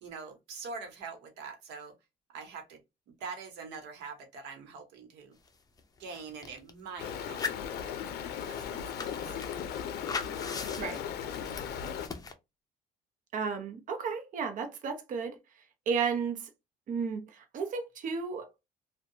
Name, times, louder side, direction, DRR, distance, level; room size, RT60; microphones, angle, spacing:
voice 1, 0.0-1.9 2.3-2.8 3.2-5.3 6.0-9.5, right 5 dB, 85° right, 0.9 m, -44 dB
sound 1, 5.5-5.6 5.8-6.7 7.2-12.3, left 5 dB, 20° left, 0.5 m, -41 dB
Stream, 7.0-12.1, left 8 dB, 70° left, 0.5 m, -37 dB
voice 2, 13.3-15.4 15.9-16.4 16.9-18.5, right 5 dB, 50° right, 0.7 m, -33 dB
2.6 x 2.2 x 2.6 m
cardioid pair, 110°, 17 cm